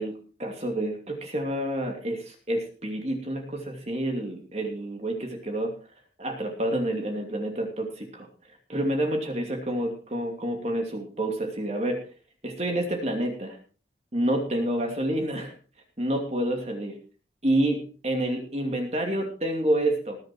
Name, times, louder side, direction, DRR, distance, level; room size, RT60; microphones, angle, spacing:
voice 1, 0.0-5.7 6.2-8.3 8.7-12.0 12.4-13.6 14.1-15.5 16.0-17.0 17.4-20.2, right 1 dB, 35° right, 2 dB, 2.7 m, -28 dB
20.0 x 7.7 x 4.5 m, 0.38 s
head